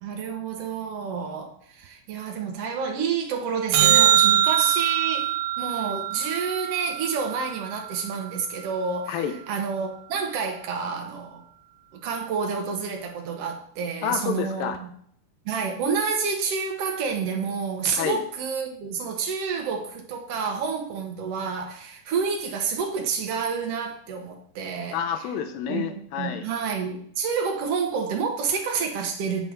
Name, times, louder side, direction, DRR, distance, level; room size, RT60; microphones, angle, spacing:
voice 1, 0.0-11.4 11.9-14.9 15.4-25.0 25.7-25.8 26.2-29.5, right 5 dB, 70° right, 2 dB, 1.5 m, -29 dB
sound 1, 3.7-8.2 14.8-14.9, right 11 dB, 85° right, 2.5 m, -23 dB
voice 2, 14.0-14.8 17.9-18.2 24.9-26.5, left 8 dB, 75° left, 7 dB, 2.4 m, -29 dB
9.7 x 3.5 x 6.3 m, 0.62 s
omnidirectional pair, 4.4 m